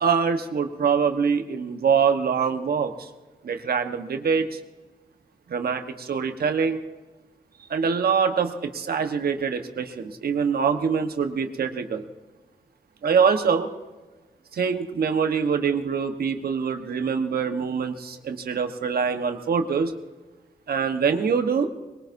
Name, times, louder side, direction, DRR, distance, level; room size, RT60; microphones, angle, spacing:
voice 1, 0.0-3.1 3.4-4.6 5.5-6.8 7.7-12.0 13.0-13.7 14.5-19.9 20.7-21.7, right 6 dB, 75° right, 7 dB, 1.2 m, -24 dB
21.5 x 18.5 x 2.7 m, 1.2 s
cardioid pair, 55°, 16 cm